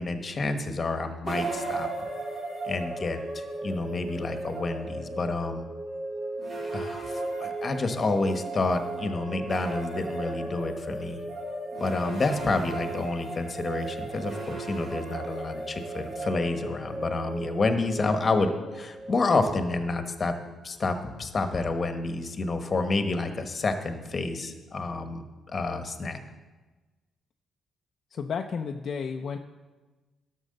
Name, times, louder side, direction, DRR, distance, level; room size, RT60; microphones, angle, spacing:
voice 1, 0.0-1.9 2.6-5.6 6.7-11.2 11.8-20.3 20.6-25.2 25.5-26.2, left 3 dB, 35° left, 7 dB, 1.1 m, -29 dB
sound 1, 1.2-20.4, right 2 dB, 55° right, 3.4 m, -36 dB
voice 2, 28.1-29.4, left 6 dB, 55° left, 3 dB, 0.5 m, -32 dB
12.0 x 6.2 x 6.5 m, 1.3 s
cardioid pair, 90°, 0 cm